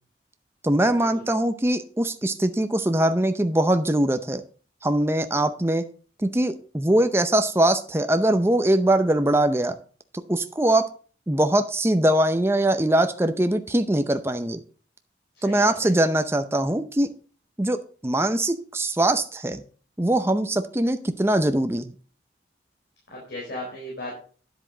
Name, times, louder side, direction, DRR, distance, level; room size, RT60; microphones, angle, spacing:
voice 1, 0.6-4.4 4.8-5.9 6.2-9.8 10.1-10.9 11.3-14.6 15.4-17.1 17.6-19.6 20.0-21.9, right 1 dB, 15° right, 8 dB, 0.6 m, -22 dB
voice 2, 15.4-15.9 23.1-24.1, left 1 dB, 65° left, -3 dB, 4.0 m, -36 dB
10.0 x 8.0 x 3.9 m, 0.40 s
head